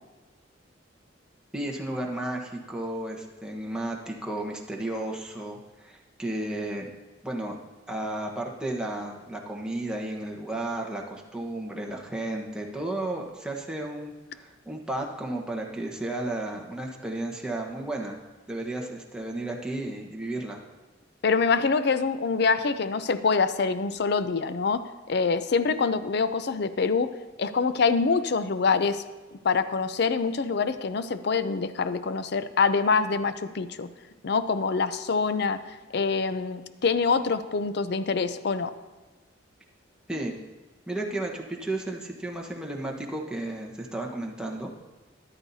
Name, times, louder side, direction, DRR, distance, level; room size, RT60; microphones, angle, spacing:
voice 1, 1.5-6.9 7.2-7.6 7.9-18.2 18.5-20.6 40.1-40.3 40.9-44.7, right 1 dB, 5° right, -1 dB, 1.2 m, -33 dB
voice 2, 21.2-24.8 25.1-27.1 27.4-29.0 29.4-33.9 34.2-35.6 35.9-38.7, left 4 dB, 60° left, 12 dB, 0.5 m, -25 dB
13.5 x 11.5 x 2.8 m, 1.2 s
head